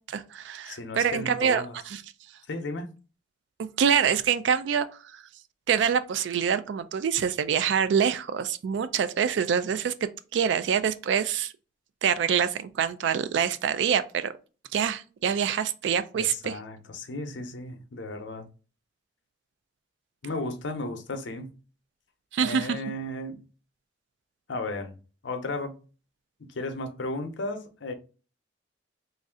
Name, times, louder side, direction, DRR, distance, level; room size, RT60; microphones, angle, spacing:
voice 1, 0.1-2.0 3.8-4.9 5.1-5.2 5.7-11.5 12.0-14.3 14.7-16.6 22.3-22.8, right 7 dB, 70° right, 0.3 m, -25 dB
voice 2, 0.6-1.7 2.5-2.9 16.2-18.5 20.2-21.6 22.4-23.4 24.5-25.0 25.2-25.8 26.4-27.9, left 2 dB, 75° left, 0.6 m, -34 dB
3.1 x 2.6 x 3.6 m
head